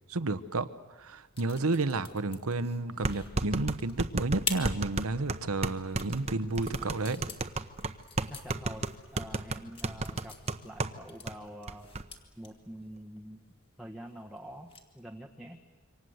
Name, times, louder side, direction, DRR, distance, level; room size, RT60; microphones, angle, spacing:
voice 1, 0.1-0.7 1.0-7.3, right 2 dB, 85° right, 13 dB, 1.0 m, -31 dB
sound 1, 1.1-15.0, left 4 dB, 25° left, 2.2 m, -46 dB
sound 2, 2.1-2.2 3.0-11.0 11.3-11.4 11.7-12.0, right 2 dB, 30° right, 0.9 m, -32 dB
voice 2, 8.3-10.3 10.6-11.9 12.4-13.4 13.8-14.7 14.9-15.6, equal, ahead, 0 dB, 1.2 m, -46 dB
27.0 x 25.0 x 8.0 m, 1.3 s
head